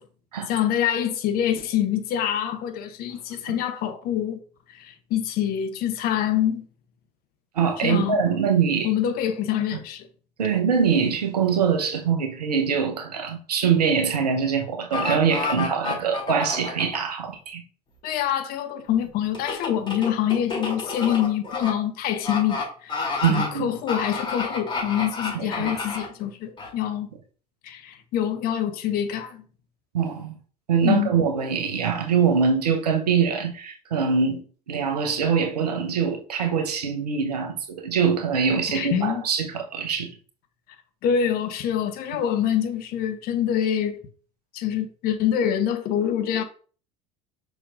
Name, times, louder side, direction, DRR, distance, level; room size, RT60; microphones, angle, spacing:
voice 1, 0.5-4.4 4.7-6.7 7.8-8.3 8.8-10.1 18.0-27.1 27.6-29.4 30.8-31.3 38.7-39.2 41.0-44.0 44.5-46.4, left 10 dB, 45° left, 1.0 m, -25 dB
voice 2, 7.5-8.9 10.4-17.6 23.2-23.7 25.3-25.7 29.9-30.3 30.7-34.4 34.7-40.1, right 6 dB, 75° right, 1.1 m, -23 dB
sound 1, 14.9-17.0 19.3-21.7 22.2-22.6 22.9-23.5 23.9-26.1 26.6-26.7, left 4 dB, 25° left, 3.4 m, -29 dB
6.2 x 5.7 x 2.6 m
figure-of-eight pair, 70°, 21 cm